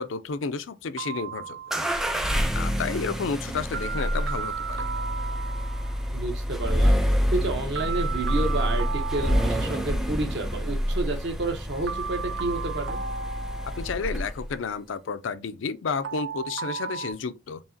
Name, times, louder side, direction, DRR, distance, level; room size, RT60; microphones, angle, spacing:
voice 1, 0.0-1.6 2.5-4.9 13.8-17.6, left 5 dB, 85° left, 0.5 m, -31 dB
sound 1, 1.0-2.1 3.7-6.0 7.7-10.1 11.9-14.2 16.0-17.1, right 6 dB, 80° right, 0.6 m, -35 dB
sound 2, 1.7-14.6, equal, ahead, 0.4 m, -27 dB
voice 2, 6.1-7.0 7.3-13.0, right 2 dB, 65° right, 1.0 m, -30 dB
4.6 x 2.9 x 2.7 m
head